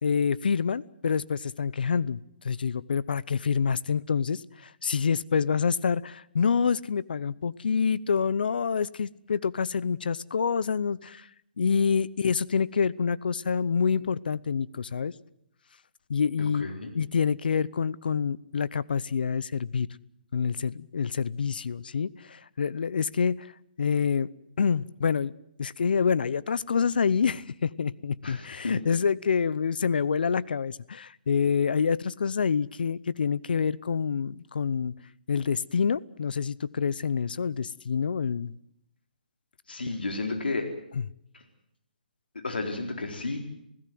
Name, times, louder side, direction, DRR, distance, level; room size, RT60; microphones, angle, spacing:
voice 1, 0.0-11.3 11.6-15.1 16.1-16.7 16.9-19.9 20.3-23.5 23.8-24.3 24.6-25.3 25.6-34.9 35.3-38.5, left 6 dB, 70° left, 20 dB, 0.9 m, -27 dB
voice 2, 16.5-16.9 28.2-28.7 39.7-40.7 41.3-41.4 42.3-43.4, left 3 dB, 90° left, 4 dB, 4.2 m, -32 dB
28.0 x 16.5 x 7.8 m, 0.78 s
hypercardioid pair, 150°, 5 cm